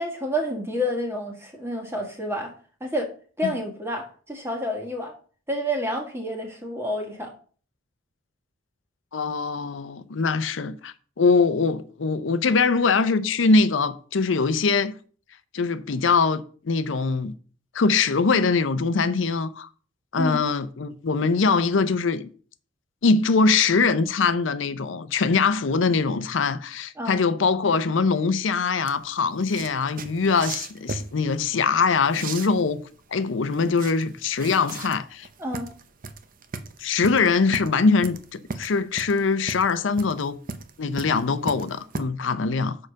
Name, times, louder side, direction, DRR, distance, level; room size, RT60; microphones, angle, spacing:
voice 1, 0.0-2.5 2.8-3.1 3.4-5.1 5.5-7.3 20.2-20.4 27.0-27.2 35.4-35.7, equal, 15° right, 1.7 m, -29 dB
voice 2, 9.1-14.9 15.5-17.3 17.7-19.7 20.1-22.3 23.0-32.8 33.1-35.3 36.8-40.4 40.8-42.8, left 4 dB, 75° left, 0.6 m, -22 dB
sound 1, 28.9-42.0, right 4 dB, 45° right, 0.7 m, -37 dB
6.6 x 4.9 x 6.3 m
head